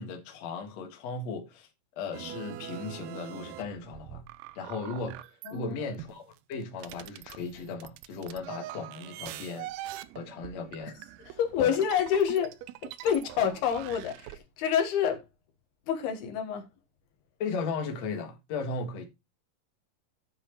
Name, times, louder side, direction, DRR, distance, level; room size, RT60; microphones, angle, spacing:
voice 1, 0.0-1.7 2.0-4.2 4.5-5.3 5.5-9.7 10.1-11.0 11.6-11.8 17.4-19.1, left 4 dB, 50° left, 2.5 m, -36 dB
sound 1, 2.1-5.6 6.0-14.4, right 14 dB, 80° right, 2.5 m, -43 dB
voice 2, 5.5-5.8 11.3-12.6 13.0-15.2 15.9-16.7, left 8 dB, 80° left, 3.4 m, -28 dB
11.5 x 7.9 x 3.0 m
omnidirectional pair, 4.5 m